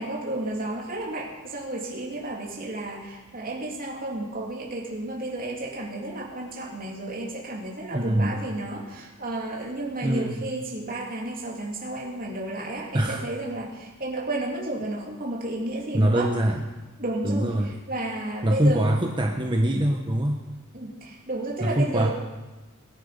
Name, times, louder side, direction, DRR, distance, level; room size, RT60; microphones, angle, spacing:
voice 1, 0.0-16.3 17.0-19.1 20.7-22.1, right 1 dB, 40° right, -2 dB, 3.2 m, -32 dB
voice 2, 7.9-8.4 10.0-10.4 12.9-13.2 15.9-16.6 17.2-17.7 18.4-20.4 21.6-22.1, right 1 dB, 20° right, 2 dB, 1.0 m, -23 dB
22.0 x 10.5 x 5.2 m, 1.2 s
head